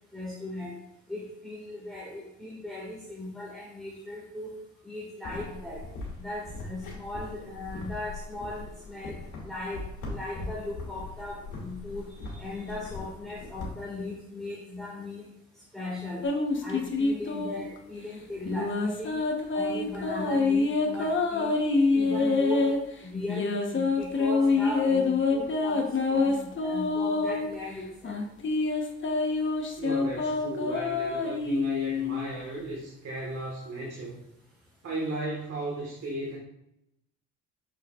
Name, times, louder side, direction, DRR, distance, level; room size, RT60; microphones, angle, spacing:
voice 1, 0.1-0.7 1.1-4.5 4.8-5.8 6.2-9.2 9.4-15.3 15.7-16.3 16.6-19.2 19.5-21.5 21.9-22.7 23.0-28.2, left 1 dB, ahead, -7 dB, 2.0 m, -38 dB
sound 1, 5.2-13.7, left 3 dB, 80° left, 2.4 m, -40 dB
sound 2, 16.2-17.8 18.5-22.8 23.3-27.5 28.0-32.3, left 3 dB, 40° left, 1.1 m, -26 dB
voice 2, 29.8-34.2 34.8-36.4, right 1 dB, 55° right, -3 dB, 1.7 m, -35 dB
6.8 x 6.4 x 2.4 m, 0.81 s
cardioid pair, 90°, 30 cm